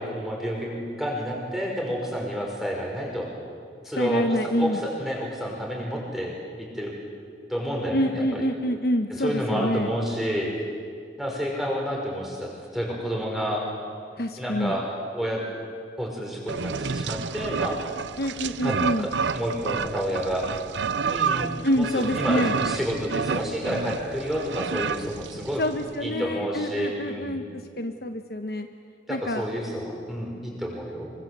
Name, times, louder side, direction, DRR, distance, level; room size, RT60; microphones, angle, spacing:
voice 1, 0.0-3.3 3.8-6.3 6.6-6.9 7.5-8.5 9.1-10.5 11.2-13.6 14.4-14.8 15.1-15.4 16.0-17.8 18.6-20.5 21.1-25.6 26.0-27.4 29.1-31.1, equal, ahead, -2 dB, 5.8 m, -30 dB
voice 2, 4.0-4.8 7.9-9.9 14.2-14.8 18.2-19.1 21.6-22.5 25.6-28.7 29.1-29.5, equal, 55° left, 6 dB, 1.1 m, -27 dB
sound 1, 16.5-25.9, right 5 dB, 80° right, 0.7 m, -30 dB
26.0 x 24.0 x 8.2 m, 2.2 s
head